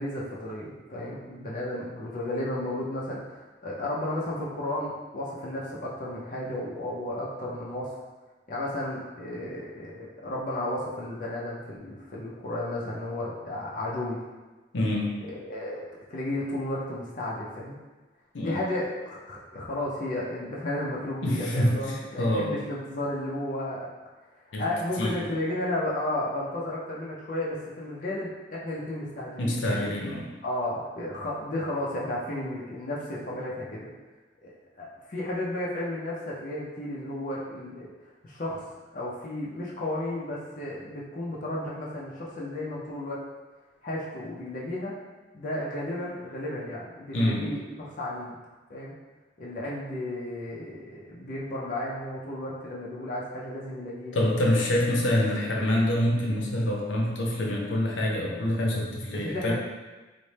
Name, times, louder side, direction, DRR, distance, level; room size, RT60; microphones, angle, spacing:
voice 1, 0.0-7.9 8.5-14.2 15.2-15.8 16.1-17.8 18.4-23.9 24.4-29.9 30.4-33.9 34.4-37.9 38.2-38.7 38.9-43.2 43.8-45.0 45.3-48.4 48.7-48.9 49.4-54.2 59.1-59.5, left 1 dB, 45° left, -5 dB, 0.5 m, -33 dB
voice 2, 14.7-15.1 18.3-18.6 21.2-22.5 24.5-24.6 25.0-25.3 29.4-30.2 47.1-47.4 54.1-59.5, left 1 dB, 80° left, -2 dB, 0.6 m, -26 dB
4.0 x 2.0 x 3.3 m, 1.2 s
head